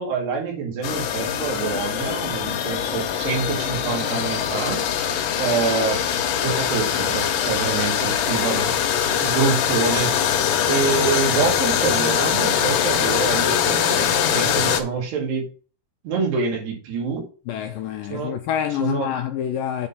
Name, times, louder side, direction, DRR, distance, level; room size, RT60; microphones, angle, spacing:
voice 1, 0.0-4.8 5.4-6.0 6.4-8.7 9.2-15.5 16.0-17.2 18.1-18.3 18.8-19.2, right 5 dB, 85° right, 4.5 m, -26 dB
sound 1, 0.8-14.8, left 9 dB, 70° left, 2.2 m, -22 dB
voice 2, 17.5-19.9, left 10 dB, 85° left, 2.0 m, -27 dB
8.1 x 4.4 x 5.5 m
omnidirectional pair, 4.6 m